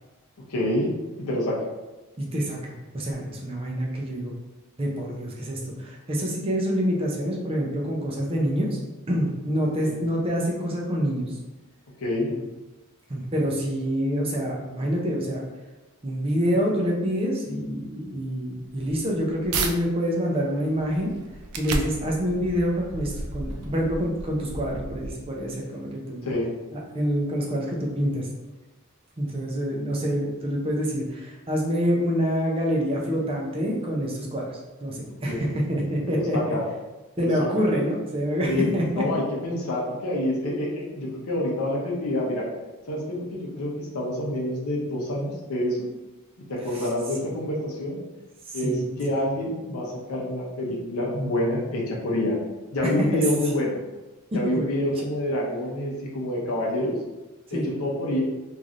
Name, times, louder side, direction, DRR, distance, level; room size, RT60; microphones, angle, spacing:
voice 1, 0.5-0.9 1.2-1.6 9.8-9.9 12.0-12.3 26.2-26.5 35.3-35.5 36.1-36.6 37.2-37.6 38.5-38.7 38.9-42.5 42.9-45.9 46.5-48.0 48.5-52.4 52.7-53.8 54.3-56.9 57.5-58.2, left 1 dB, 75° left, -4 dB, 0.7 m, -27 dB
voice 2, 2.2-4.3 4.8-8.8 9.1-11.4 13.1-15.4 16.0-21.1 21.6-26.3 26.7-28.3 29.2-36.6 37.2-39.1 46.7-46.9 48.5-48.8 53.1-53.2 54.3-54.7 57.5-57.7, equal, 25° right, -2 dB, 0.5 m, -27 dB
sound 1, 18.7-19.7 20.3-25.5, right 3 dB, 85° right, 0.4 m, -34 dB
3.1 x 2.5 x 2.5 m, 1.1 s
head